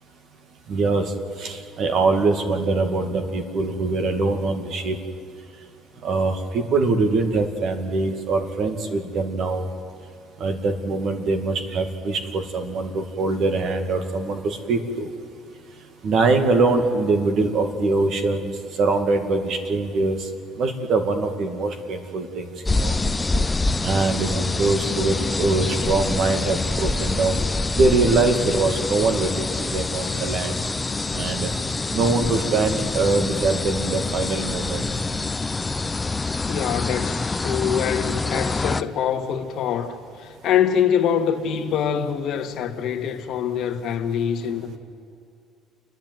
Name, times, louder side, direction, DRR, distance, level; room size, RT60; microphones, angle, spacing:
voice 1, 0.7-1.1 1.4-5.0 6.0-9.7 10.4-15.1 16.0-18.5 18.8-20.3 20.6-23.0 23.8-27.4 27.7-30.6 31.1-31.5 31.9-34.8, right 3 dB, 50° right, 2.2 m, -23 dB
sound 1, 22.7-38.8, left 3 dB, 15° left, 0.5 m, -26 dB
voice 2, 36.5-44.8, left 8 dB, 60° left, 1.6 m, -24 dB
29.0 x 11.0 x 9.4 m
cardioid pair, 135°, 0 cm